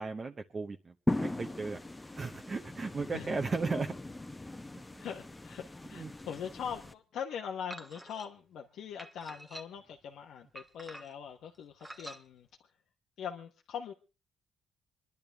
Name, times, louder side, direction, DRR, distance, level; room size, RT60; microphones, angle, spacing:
voice 1, 0.0-1.8 2.1-3.9 4.9-5.0 5.9-6.1, right 4 dB, 35° right, 4 dB, 0.8 m, -36 dB
sound 1, 1.1-6.9, left 2 dB, 15° left, 1.0 m, -39 dB
voice 2, 5.0-12.7 13.2-13.9, left 8 dB, 80° left, 2 dB, 1.0 m, -42 dB
sound 2, 7.7-8.3 9.0-9.9 10.5-11.3 11.8-12.2, right 1 dB, 10° right, 1.2 m, -47 dB
26.5 x 10.5 x 3.4 m, 0.33 s
cardioid pair, 100°, 0 cm